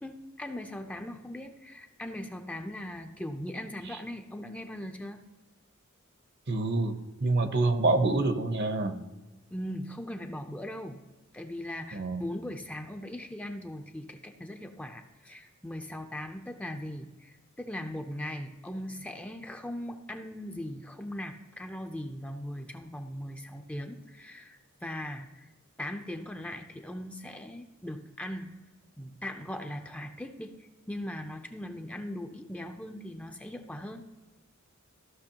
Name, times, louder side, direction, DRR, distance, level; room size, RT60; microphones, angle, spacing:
voice 1, 0.0-5.2 9.5-11.0 11.3-25.5 25.8-28.5 29.0-34.1, left 1 dB, 5° left, 5 dB, 0.5 m, -39 dB
voice 2, 6.5-6.9 7.2-8.9 11.9-12.2, right 2 dB, 50° right, 8 dB, 0.8 m, -26 dB
14.5 x 6.0 x 2.9 m, 1.2 s
head